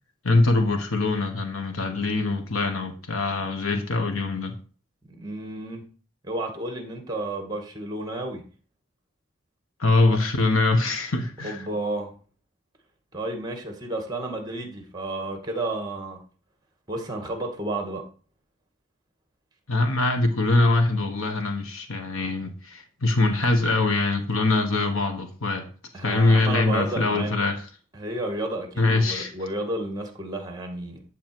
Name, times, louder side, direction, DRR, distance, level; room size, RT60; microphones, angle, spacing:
voice 1, 0.2-4.5 9.8-11.6 19.7-25.7 26.0-27.6 28.8-29.3, left 2 dB, 85° left, 1.5 m, -23 dB
voice 2, 5.2-5.9 6.2-8.4 11.4-12.1 13.1-16.2 16.9-18.0 25.9-27.3 27.9-31.0, right 2 dB, 20° right, 2.2 m, -31 dB
12.0 x 4.1 x 7.9 m
head